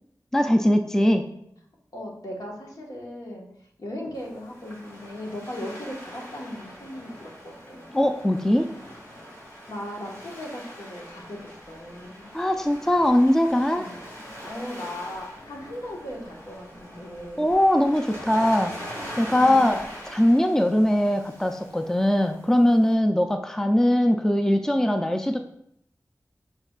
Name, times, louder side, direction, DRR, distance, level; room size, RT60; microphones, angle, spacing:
voice 1, 0.3-1.2 7.9-8.7 12.3-13.9 17.4-18.8 19.2-25.4, left 1 dB, 5° left, 6 dB, 0.4 m, -21 dB
voice 2, 1.9-3.5 3.8-8.0 9.7-11.4 11.7-12.3 13.8-13.9 14.5-17.5 19.3-19.9, left 1 dB, 70° left, -2 dB, 1.4 m, -37 dB
Waves surf, 4.1-22.9, equal, 40° left, 2.7 m, -42 dB
10.5 x 4.5 x 2.4 m, 0.75 s
wide cardioid pair, 70°, 6 cm